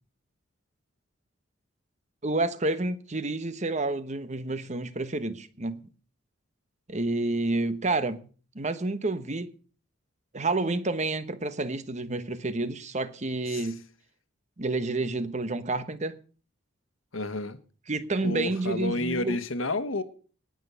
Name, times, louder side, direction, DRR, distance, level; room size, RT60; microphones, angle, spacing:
voice 1, 2.2-5.9 6.9-8.2 8.5-9.5 10.3-13.8 14.6-16.2 17.9-19.4, right 2 dB, 35° right, 1.1 m, -29 dB
voice 2, 17.1-17.6 18.2-20.0, left 2 dB, 85° left, 1.4 m, -30 dB
19.0 x 6.4 x 6.9 m
head